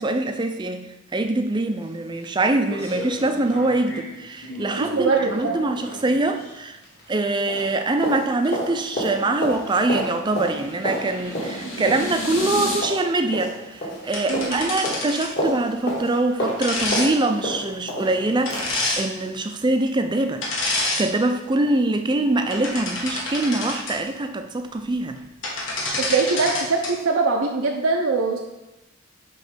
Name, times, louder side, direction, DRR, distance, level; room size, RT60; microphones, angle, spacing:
voice 1, 0.0-6.8 7.1-20.4 20.7-25.2 25.9-26.0, right 2 dB, 20° right, 6 dB, 0.4 m, -24 dB
sound 1, 1.8-1.9 2.2-2.3 2.7-7.2 7.5-19.1 19.5-19.6, equal, 50° left, 2.2 m, -32 dB
voice 2, 4.8-5.6 14.3-14.6 26.0-28.4, right 4 dB, 80° right, 0 dB, 0.7 m, -22 dB
sound 2, 8.9-12.8, equal, 90° left, 1.9 m, -33 dB
sound 3, 14.1-15.4 16.6-17.1 18.4-19.0 20.4-21.1 21.5-21.7 22.3-23.9 25.2-25.3 25.4-26.9, left 2 dB, 65° left, 1.5 m, -27 dB
7.7 x 3.2 x 5.2 m, 0.96 s
head